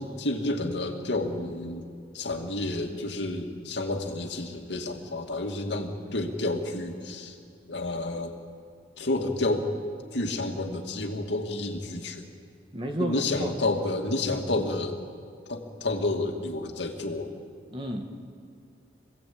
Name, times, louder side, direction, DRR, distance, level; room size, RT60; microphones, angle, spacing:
voice 1, 0.0-1.8 2.1-7.4 7.7-8.4 9.0-9.6 10.1-12.3 13.0-15.0 15.5-17.3, left 2 dB, 70° left, 3 dB, 2.4 m, -30 dB
voice 2, 12.7-13.5 17.7-18.1, equal, 30° right, 3 dB, 2.0 m, -31 dB
26.5 x 16.5 x 8.8 m, 2.3 s
head